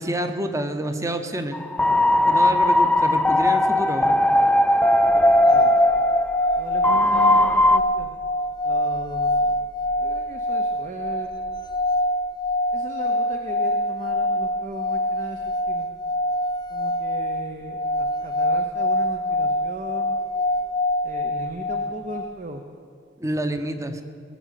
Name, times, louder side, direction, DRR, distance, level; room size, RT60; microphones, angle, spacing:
voice 1, 0.0-1.6 2.3-4.2 23.2-24.0, right 1 dB, 20° right, 8 dB, 0.9 m, -28 dB
sound 1, 1.5-7.8, left 1 dB, 5° left, 0.3 m, -18 dB
sound 2, 5.2-22.3, left 1 dB, 25° left, 0.8 m, -25 dB
voice 2, 5.5-5.8 6.6-8.1 8.6-9.7 10.0-11.3 12.7-15.9 16.7-20.2 21.0-22.6, right 2 dB, 45° right, 4 dB, 0.8 m, -37 dB
19.5 x 7.5 x 8.3 m, 2.3 s
head